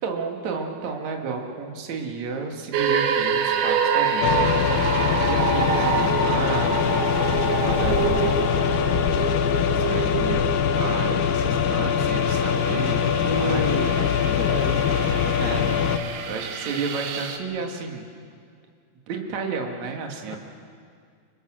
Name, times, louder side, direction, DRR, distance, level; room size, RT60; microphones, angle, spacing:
voice 1, 0.0-8.6 9.9-10.4 10.8-14.0 14.9-18.1 19.1-20.4, right 5 dB, 55° right, 2 dB, 3.0 m, -32 dB
sound 1, 2.7-17.4, right 6 dB, 85° right, 3.3 m, -27 dB
sound 2, 4.2-16.0, left 8 dB, 90° left, 2.8 m, -23 dB
voice 2, 13.2-15.0 20.3-20.4, left 2 dB, 65° left, -1 dB, 0.9 m, -30 dB
26.0 x 23.0 x 6.3 m, 2.2 s
omnidirectional pair, 4.3 m